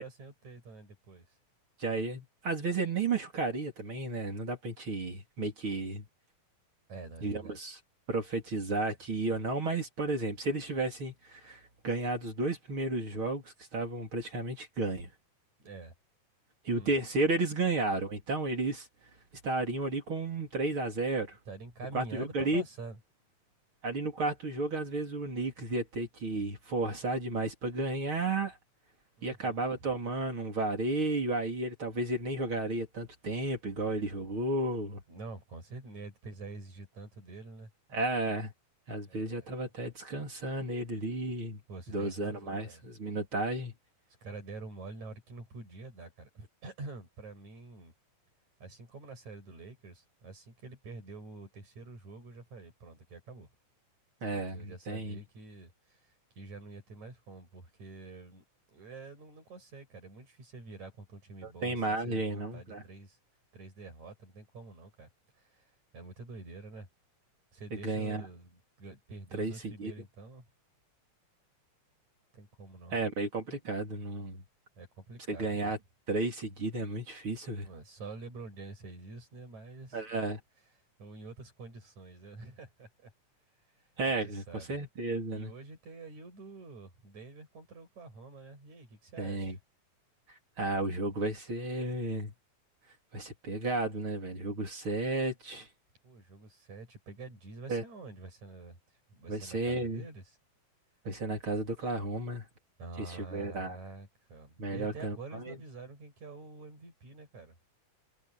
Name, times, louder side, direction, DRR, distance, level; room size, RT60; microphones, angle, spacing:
voice 1, 0.0-1.4 6.9-7.6 15.6-15.9 16.8-17.0 21.5-23.0 29.2-29.7 35.1-37.7 39.1-39.5 41.7-42.8 44.2-47.9 48.6-53.5 54.3-63.2 63.5-65.1 65.4-66.9 67.5-70.4 72.3-72.9 74.8-75.7 77.6-80.0 81.0-83.1 83.8-84.8 85.3-89.6 96.0-98.8 99.1-100.4 102.8-107.6, right 3 dB, 60° right, 8.9 m, -47 dB
voice 2, 1.8-6.0 7.2-7.8 8.1-15.1 16.6-18.9 19.4-21.4 21.9-22.6 23.8-28.6 29.2-35.0 37.9-38.5 38.9-41.6 41.9-43.7 54.2-55.2 61.4-62.8 67.8-68.2 69.4-69.9 72.9-74.4 75.3-75.8 76.1-77.7 79.9-80.4 84.0-85.5 89.2-89.6 90.6-92.3 93.1-95.7 97.7-97.8 99.3-100.0 101.0-102.4 103.1-103.8 104.6-105.6, right 2 dB, 40° right, 4.1 m, -33 dB
omnidirectional pair, 3.7 m